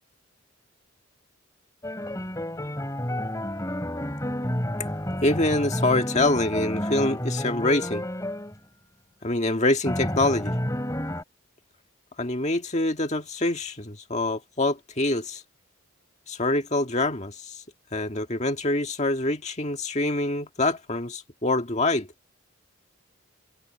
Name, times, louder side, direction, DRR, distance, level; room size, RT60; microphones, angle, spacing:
sound 1, 1.8-8.6 9.9-11.2, left 1 dB, 15° left, 3.6 m, -30 dB
voice 1, 5.2-8.0 9.2-10.5 12.2-15.4 16.3-17.6 17.9-22.1, left 2 dB, 35° left, 1.8 m, -25 dB
head